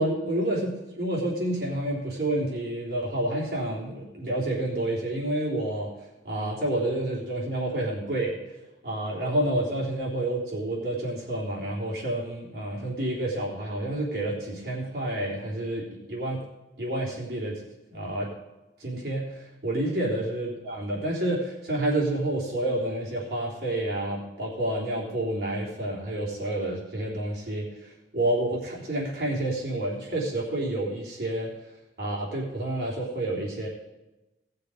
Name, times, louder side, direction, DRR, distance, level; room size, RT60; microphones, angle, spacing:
voice 1, 0.0-5.9 6.2-8.4 8.8-16.4 16.8-17.6 17.9-18.3 18.8-31.5 32.0-33.7, right 1 dB, 55° right, -4 dB, 3.3 m, -29 dB
18.0 x 6.8 x 5.0 m, 1.0 s
head